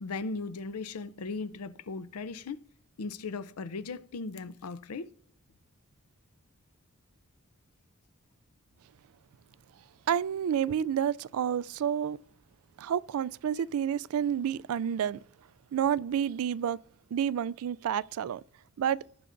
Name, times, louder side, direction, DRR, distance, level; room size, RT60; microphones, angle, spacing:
voice 1, 0.0-2.7 3.0-5.1, left 4 dB, 90° left, 0.5 m, -37 dB
voice 2, 10.1-12.2 12.8-15.2 15.7-16.8 17.1-18.4 18.8-19.0, right 9 dB, 75° right, 0.3 m, -29 dB
18.0 x 6.6 x 2.6 m
head